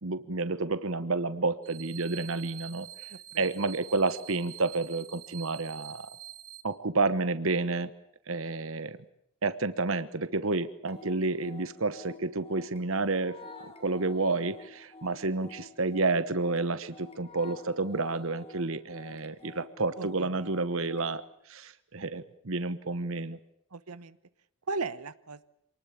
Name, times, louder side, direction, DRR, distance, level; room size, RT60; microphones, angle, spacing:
voice 1, 0.0-3.1 3.4-6.1 6.6-7.9 8.3-9.0 9.4-13.4 13.8-21.2 21.5-23.4, right 3 dB, 65° right, 12 dB, 1.1 m, -30 dB
sound 1, 1.6-6.6, right 13 dB, 35° right, 3.2 m, -46 dB
voice 2, 3.1-3.5 20.0-20.4 23.7-24.2 24.7-25.4, right 3 dB, 85° right, 12 dB, 1.2 m, -37 dB
sound 2, 10.8-21.2, left 3 dB, 25° left, 2.4 m, -50 dB
27.5 x 20.0 x 8.4 m, 0.75 s
head